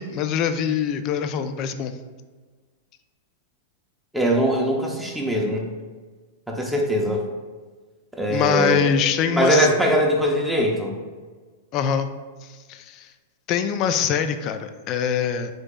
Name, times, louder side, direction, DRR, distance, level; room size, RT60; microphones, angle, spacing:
voice 1, 0.0-1.9 8.3-9.7 11.7-12.1 12.7-13.1 13.5-15.5, left 8 dB, 40° left, 9 dB, 0.3 m, -23 dB
voice 2, 4.1-5.7 6.5-7.2 8.1-8.9 9.3-10.9, right 1 dB, 5° right, -1 dB, 0.6 m, -21 dB
4.0 x 3.2 x 3.6 m, 1.4 s
hypercardioid pair, 140°, 0 cm